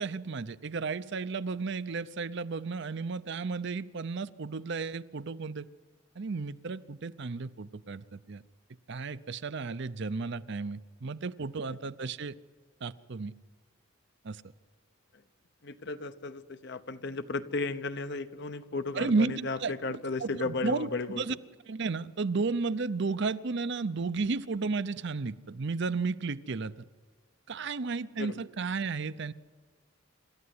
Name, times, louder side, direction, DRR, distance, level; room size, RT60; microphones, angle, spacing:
voice 1, 0.0-5.7 6.2-8.4 8.9-12.3 12.8-13.3 14.2-14.4 18.9-21.3 21.7-26.7 27.5-29.3, right 4 dB, 60° right, 14 dB, 0.6 m, -33 dB
voice 2, 15.6-21.2 28.2-28.4, left 3 dB, 60° left, 11 dB, 1.0 m, -34 dB
26.5 x 13.5 x 9.6 m, 1.5 s
head